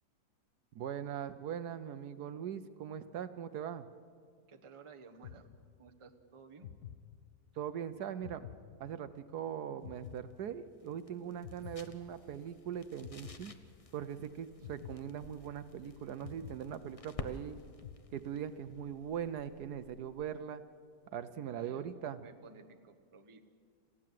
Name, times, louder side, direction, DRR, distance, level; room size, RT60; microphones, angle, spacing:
voice 1, 0.7-3.9 7.6-8.5 8.8-13.5 13.9-17.6 18.1-20.6 21.1-22.2, right 9 dB, 70° right, 12 dB, 1.2 m, -41 dB
voice 2, 4.5-5.5 5.8-6.7 21.2-21.9 22.2-23.4, right 5 dB, 25° right, 5 dB, 0.9 m, -55 dB
sound 1, 5.2-6.1 6.6-7.7 8.2-9.4 9.8-11.0 11.4-12.6 13.0-14.1 14.6-15.8 16.2-17.4 17.8-18.7, left 9 dB, 65° left, 1.2 m, -51 dB
sound 2, 9.8-20.4, left 3 dB, 35° left, 0.6 m, -52 dB
27.5 x 15.5 x 7.6 m, 2.1 s
omnidirectional pair, 1.9 m